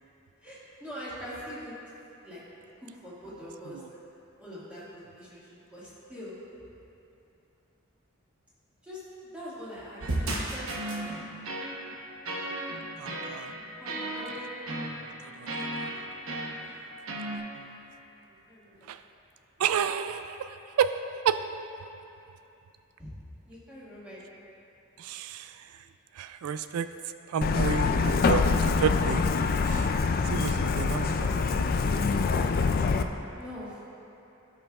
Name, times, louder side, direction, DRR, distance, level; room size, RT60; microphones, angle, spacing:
voice 1, 0.4-1.7 2.2-2.4 3.0-4.0 4.4-6.4 8.8-9.0 9.3-10.7 13.8-14.6 18.3-18.8 23.0-23.1 23.5-24.2 33.4-33.8, equal, 5° right, -11 dB, 1.9 m, -43 dB
sound 1, 10.0-17.4, right 1 dB, 70° right, 1.0 m, -35 dB
voice 2, 13.0-13.5 15.2-15.9 18.8-19.0 19.6-21.0 21.2-21.4 25.0-25.8 26.1-26.9 27.3-29.3 29.7-29.9 30.2-31.3 31.6-32.0, right 8 dB, 85° right, 11 dB, 0.3 m, -31 dB
Truck, 27.4-33.0, left 4 dB, 45° left, 0.3 m, -25 dB
16.0 x 5.6 x 2.4 m, 2.8 s
head